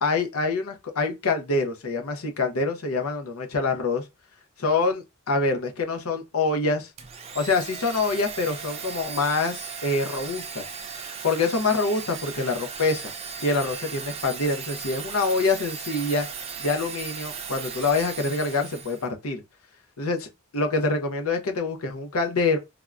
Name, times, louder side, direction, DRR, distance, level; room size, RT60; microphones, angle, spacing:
voice 1, 0.0-4.0 4.6-6.9 7.3-10.7 11.2-13.0 13.4-16.3 16.6-19.4 20.0-22.6, left 3 dB, 80° left, 0.7 m, -25 dB
Domestic sounds home sounds, 7.0-19.1, right 6 dB, 30° right, 0.4 m, -37 dB
3.4 x 2.2 x 2.4 m
head